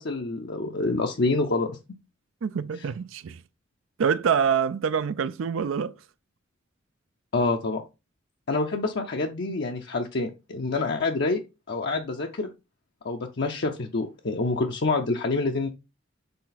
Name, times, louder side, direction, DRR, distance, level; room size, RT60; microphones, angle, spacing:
voice 1, 0.0-1.8 7.3-7.8 8.5-11.4 11.7-12.5 13.0-15.7, left 3 dB, 55° left, 0.6 m, -27 dB
voice 2, 2.4-3.4 4.0-5.9 9.4-9.5, right 7 dB, 75° right, 0.4 m, -26 dB
6.8 x 4.2 x 4.0 m
head